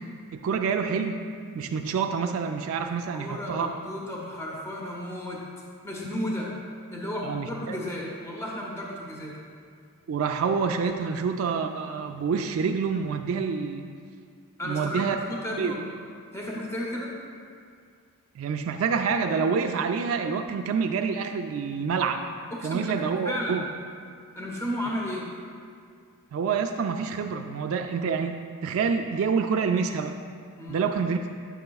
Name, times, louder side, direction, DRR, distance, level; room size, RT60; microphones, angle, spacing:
voice 1, 0.3-1.2 1.5-3.7 7.2-7.8 10.1-13.9 14.6-15.2 15.6-15.8 18.4-22.2 22.6-23.6 26.3-30.1 30.7-31.2, right 5 dB, 65° right, 4 dB, 0.3 m, -27 dB
voice 2, 2.8-5.4 5.8-6.5 6.9-9.4 14.6-15.9 16.3-17.1 22.5-23.0 23.3-23.6 24.3-25.3 30.6-30.9, equal, 15° left, -3 dB, 0.7 m, -33 dB
9.4 x 6.6 x 2.3 m, 2.2 s
head